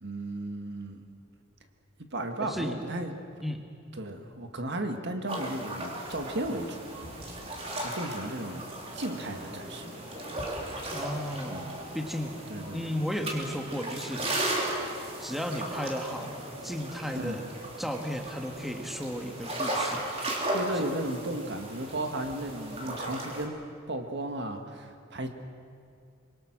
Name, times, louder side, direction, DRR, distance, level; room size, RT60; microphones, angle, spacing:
voice 1, 0.0-1.0 2.1-3.1 3.9-7.5 7.8-8.6 8.9-9.9 11.5-11.8 12.5-12.8 17.1-17.4 20.5-23.6 23.9-25.3, right 1 dB, 55° right, 5 dB, 1.8 m, -35 dB
voice 2, 2.4-2.8 3.4-3.6 10.9-12.4 12.7-14.7 15.2-16.4 16.6-17.5 17.8-20.0 20.7-20.8, equal, ahead, 3 dB, 1.5 m, -34 dB
sound 1, 5.3-23.4, right 1 dB, 30° right, 3.5 m, -36 dB
26.0 x 22.5 x 6.1 m, 2.4 s
head